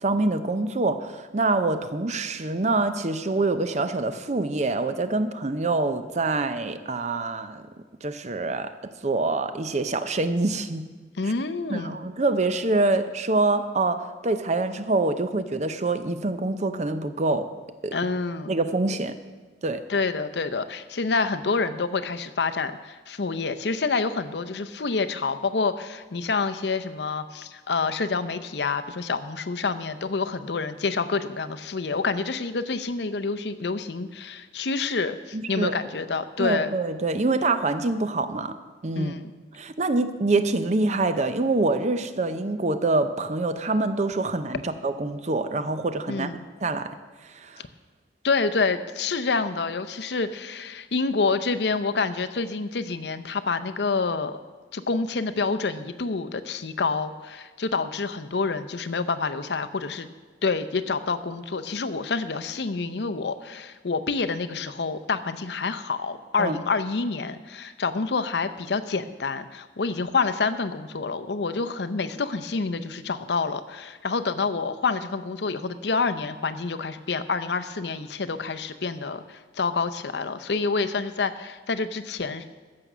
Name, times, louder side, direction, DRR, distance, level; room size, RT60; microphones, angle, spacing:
voice 1, 0.0-7.6 8.0-8.7 9.0-10.9 11.2-11.3 11.7-17.5 17.8-17.9 18.5-19.2 19.6-19.8 35.3-35.8 36.4-38.6 38.8-39.1 39.6-46.3 46.6-47.0 47.3-47.6 66.4-66.6, right 2 dB, 40° right, 11 dB, 0.6 m, -25 dB
voice 2, 11.2-12.0 17.9-18.5 19.9-36.7 38.9-39.3 46.1-46.4 48.2-54.4 54.7-60.1 60.4-82.4, left 4 dB, 75° left, 10 dB, 0.7 m, -27 dB
15.0 x 6.9 x 6.1 m, 1.4 s
head